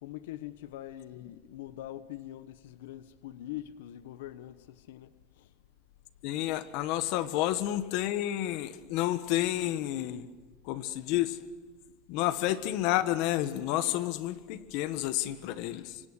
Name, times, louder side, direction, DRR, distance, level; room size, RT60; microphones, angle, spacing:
voice 1, 0.0-5.1 5.4-5.5 7.4-7.5, left 13 dB, 85° left, 1.0 m, -43 dB
voice 2, 6.2-10.3 10.7-11.4 12.1-16.0, left 14 dB, 55° left, 1.4 m, -30 dB
25.5 x 24.0 x 6.6 m
supercardioid pair, 165°, 0 cm